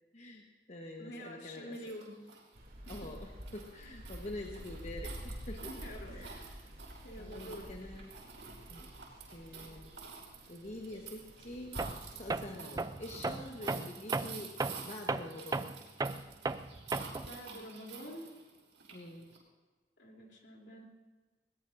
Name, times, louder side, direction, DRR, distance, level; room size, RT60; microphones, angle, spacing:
voice 1, 0.1-1.9 2.9-5.7 6.1-6.4 7.2-8.1 8.7-8.9 9.3-9.9 10.5-11.8 12.1-14.5 14.8-15.7 18.9-19.3, left 1 dB, 40° left, 0 dB, 1.2 m, -46 dB
voice 2, 1.0-2.2 5.4-6.2 7.0-7.7 17.3-18.3 20.0-20.9, equal, 70° left, -1 dB, 3.2 m, -47 dB
sound 1, 1.7-19.4, right 6 dB, 90° right, 5.4 m, -50 dB
sound 2, 2.5-12.4, equal, 55° right, 3.0 m, -49 dB
Tools, 11.8-12.0 12.3-17.3, right 3 dB, 20° right, 0.4 m, -36 dB
21.0 x 19.5 x 2.6 m, 1.3 s
head